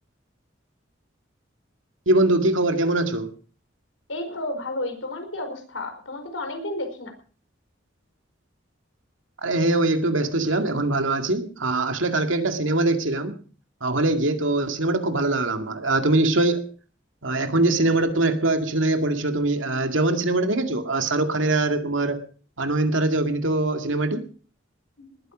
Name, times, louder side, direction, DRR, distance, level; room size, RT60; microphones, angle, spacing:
voice 1, 2.1-3.3 9.4-13.4 13.8-16.7 17.2-22.2 22.6-24.3, right 2 dB, 80° right, 7 dB, 2.2 m, -22 dB
voice 2, 4.1-7.1 25.0-25.1, left 1 dB, 85° left, 6 dB, 4.9 m, -32 dB
20.0 x 9.3 x 6.2 m, 0.41 s
head